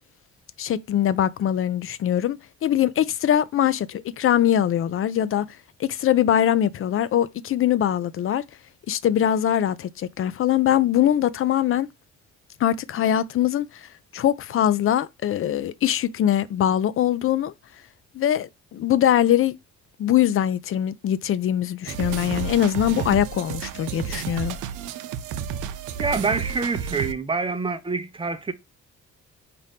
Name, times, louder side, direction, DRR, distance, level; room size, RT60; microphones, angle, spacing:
voice 1, 0.6-5.5 5.8-8.4 8.9-11.9 12.6-17.5 18.1-19.6 20.0-24.6, left 11 dB, 45° left, 0.4 m, -22 dB
sound 1, 21.9-27.1, right 8 dB, 90° right, 0.5 m, -31 dB
voice 2, 26.0-28.5, right 4 dB, 15° right, 0.6 m, -26 dB
4.2 x 2.6 x 3.4 m
cardioid pair, 90°, 30 cm